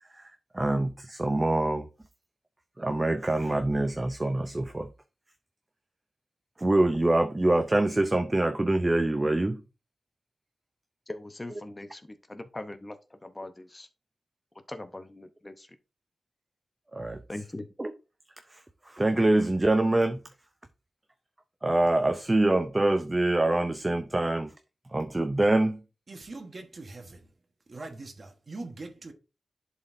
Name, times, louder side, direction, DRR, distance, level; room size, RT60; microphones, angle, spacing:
voice 1, 0.1-1.9 2.8-4.9 6.6-9.6 16.9-17.2 17.8-17.9 18.5-20.2 21.6-24.5 24.9-25.8, right 2 dB, 20° right, 0.5 m, -25 dB
voice 2, 11.1-13.9 14.7-15.8 17.3-17.7, left 2 dB, 20° left, 0.7 m, -41 dB
voice 3, 26.1-27.2 27.7-29.1, right 2 dB, 45° right, 1.2 m, -42 dB
11.0 x 4.1 x 2.6 m
wide cardioid pair, 90°, 0 cm